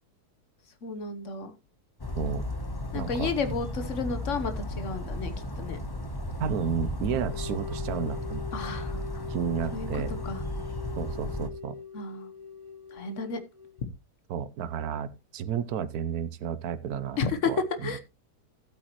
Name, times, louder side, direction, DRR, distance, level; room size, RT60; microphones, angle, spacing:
voice 1, 0.8-1.5 2.9-5.8 8.5-9.2 9.7-10.4 11.9-12.3 12.9-13.4 13.8-13.9 17.2-17.5 17.8-18.0, left 5 dB, 50° left, 8 dB, 1.4 m, -32 dB
Bird vocalization bird call bird song, 2.0-11.5, left 1 dB, 20° left, 0.8 m, -35 dB
voice 2, 2.9-3.3 6.4-8.5 9.3-10.1 11.0-11.8 14.3-17.2 17.4-17.9, right 8 dB, 70° right, 13 dB, 1.3 m, -32 dB
sound 1, 7.1-13.8, left 5 dB, 10° right, 2.4 m, -42 dB
15.0 x 8.4 x 3.0 m, 0.27 s
omnidirectional pair, 1.8 m